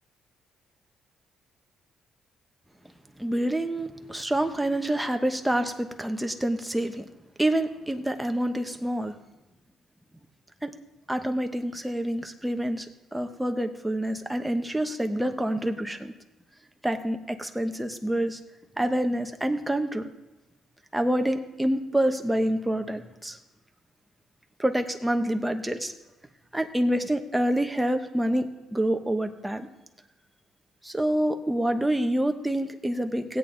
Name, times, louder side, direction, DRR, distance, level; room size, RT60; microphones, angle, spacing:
voice 1, 3.2-7.0 7.4-9.2 10.6-10.7 11.1-16.1 16.8-18.4 18.8-20.1 20.9-23.4 24.6-25.9 26.5-29.7 30.8-33.4, right 1 dB, 5° right, 6 dB, 1.0 m, -27 dB
16.0 x 8.6 x 3.9 m, 1.0 s
cardioid pair, 90°, 0 cm